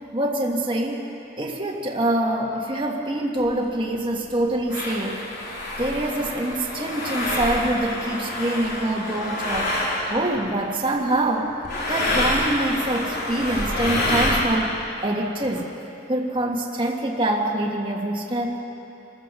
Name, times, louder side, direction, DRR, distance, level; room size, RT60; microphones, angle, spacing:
voice 1, 0.1-1.0 1.4-5.3 5.8-9.8 10.1-11.5 11.9-15.7 16.1-18.6, right 1 dB, 25° right, -1 dB, 1.8 m, -25 dB
sound 1, 3.4-3.5 4.2-4.3 4.7-10.5 11.6-14.4, left 1 dB, 50° left, 3.6 m, -27 dB
26.5 x 14.5 x 6.8 m, 2.9 s
head